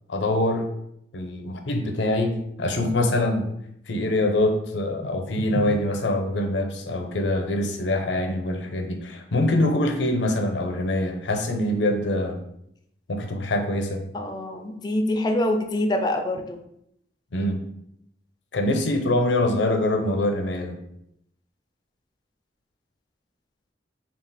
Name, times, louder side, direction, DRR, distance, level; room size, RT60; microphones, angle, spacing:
voice 1, 0.1-0.7 1.1-3.5 3.9-12.4 13.1-14.0 17.3-17.6 18.5-20.8, left 1 dB, 85° left, 5 dB, 0.6 m, -24 dB
voice 2, 14.1-16.6, left 1 dB, 25° left, 4 dB, 0.4 m, -25 dB
3.7 x 2.4 x 4.0 m, 0.77 s
head